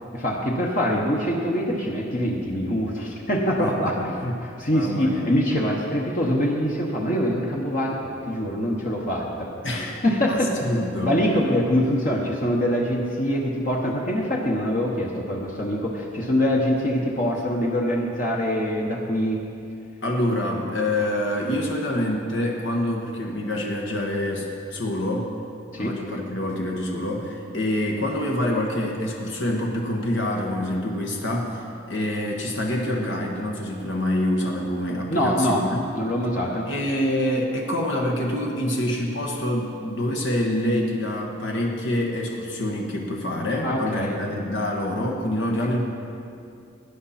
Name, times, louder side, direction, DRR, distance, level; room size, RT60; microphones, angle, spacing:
voice 1, 0.1-9.5 10.0-19.4 25.7-25.9 35.1-35.6 35.9-36.7 43.6-44.2, equal, 45° left, -2 dB, 1.1 m, -24 dB
voice 2, 3.6-4.2 4.7-5.3 9.6-10.0 10.3-10.4 10.6-11.2 20.0-25.3 25.8-35.8 36.7-45.8, left 1 dB, 75° left, -1 dB, 1.4 m, -26 dB
17.5 x 9.9 x 4.3 m, 2.5 s
head